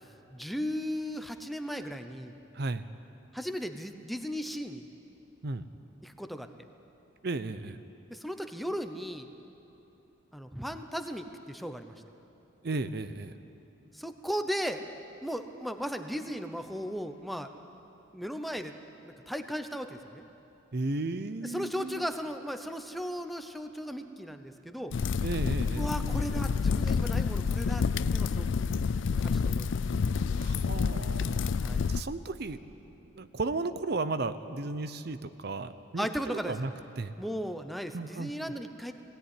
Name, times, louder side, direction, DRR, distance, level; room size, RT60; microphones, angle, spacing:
voice 1, 0.3-2.3 3.3-4.8 6.0-6.5 8.1-9.3 10.3-12.0 13.9-14.8 15.2-17.5 18.1-18.7 19.0-20.2 21.4-24.9 25.8-27.8 28.1-28.7 29.2-29.7 31.6-31.9 36.0-36.6 37.2-38.9, equal, ahead, 7 dB, 0.7 m, -36 dB
voice 2, 2.5-2.9 5.4-5.6 7.2-7.8 12.6-13.3 20.7-22.0 25.2-25.9 30.4-31.6 31.9-36.1 36.5-36.7 37.0-37.1 37.9-38.3, right 3 dB, 55° right, 12 dB, 0.6 m, -34 dB
sound 1, 24.9-32.0, left 5 dB, 70° left, 0.4 m, -28 dB
20.0 x 17.0 x 9.9 m, 3.0 s
head